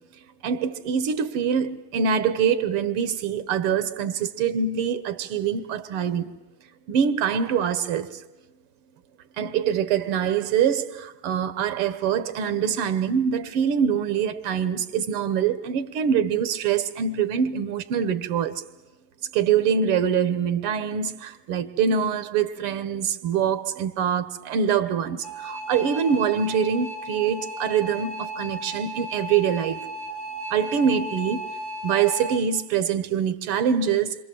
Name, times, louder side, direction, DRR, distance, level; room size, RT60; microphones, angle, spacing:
voice 1, 0.4-6.3 6.9-8.2 9.4-18.6 19.3-29.9 30.5-31.4 31.8-34.2, right 7 dB, 90° right, 2.0 m, -24 dB
sound 1, 25.2-32.4, equal, 20° left, 4.2 m, -35 dB
28.0 x 26.0 x 7.7 m
omnidirectional pair, 2.4 m